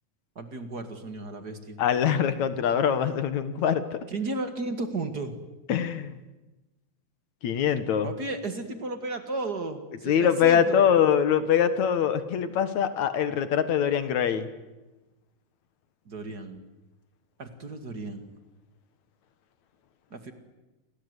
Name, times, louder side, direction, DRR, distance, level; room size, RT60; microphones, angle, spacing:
voice 1, 0.4-1.8 4.1-5.3 8.0-10.9 16.1-16.6 17.4-18.3 20.1-20.3, right 2 dB, 35° right, 7 dB, 2.3 m, -34 dB
voice 2, 1.8-4.0 5.7-6.1 7.4-8.1 10.0-14.5, left 8 dB, 70° left, 11 dB, 2.7 m, -23 dB
29.5 x 23.5 x 8.3 m, 1.1 s
omnidirectional pair, 3.4 m